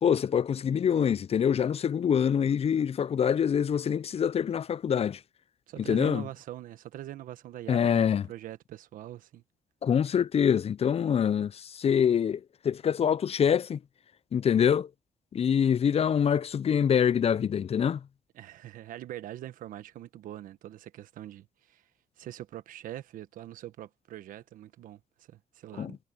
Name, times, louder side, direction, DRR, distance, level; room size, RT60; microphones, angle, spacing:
voice 1, 0.0-5.2 5.9-6.2 7.7-8.2 9.8-13.8 14.3-14.9 15.3-18.0 25.8-25.9, left 8 dB, 50° left, 0.5 m, -25 dB
voice 2, 5.7-9.4 18.3-21.8 22.2-26.0, right 13 dB, 85° right, 1.3 m, -43 dB
supercardioid pair, 55°, 14 cm